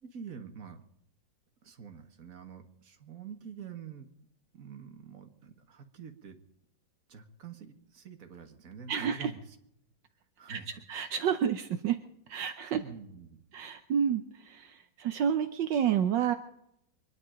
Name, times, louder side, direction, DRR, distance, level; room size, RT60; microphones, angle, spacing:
voice 1, 0.0-0.8 1.6-4.1 4.5-6.4 7.1-9.6 10.4-10.7 12.7-13.4, right 6 dB, 45° right, 5 dB, 2.0 m, -46 dB
voice 2, 8.9-9.3 10.5-10.6 10.9-12.0 12.3-12.8 13.5-16.3, right 8 dB, 75° right, 7 dB, 1.5 m, -29 dB
24.5 x 11.0 x 5.1 m, 0.77 s
omnidirectional pair, 2.1 m